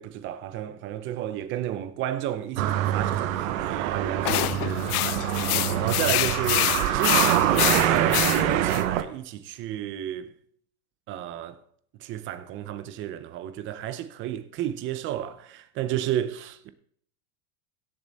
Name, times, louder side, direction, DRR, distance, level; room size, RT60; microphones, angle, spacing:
voice 1, 0.0-5.3 5.8-7.5 7.9-10.3 11.1-11.6 12.0-16.7, right 11 dB, 25° right, 0.6 m, -32 dB
sound 1, 2.6-9.0, right 11 dB, 60° right, 1.1 m, -25 dB
sound 2, 4.2-8.8, left 19 dB, 80° left, 0.5 m, -26 dB
16.5 x 7.2 x 4.1 m
supercardioid pair, 150°, 45 cm